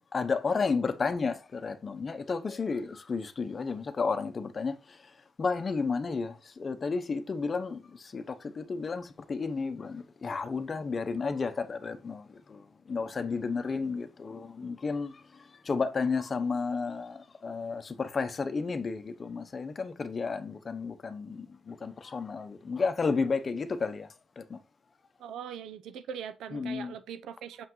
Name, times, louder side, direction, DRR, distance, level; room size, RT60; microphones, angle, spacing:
voice 1, 0.1-5.1 5.4-24.1 24.4-24.6 26.5-26.9, left 4 dB, 35° left, 0.8 m, -32 dB
voice 2, 25.2-27.7, right 8 dB, 80° right, 0.6 m, -41 dB
6.5 x 5.7 x 3.1 m
cardioid pair, 90°, 0 cm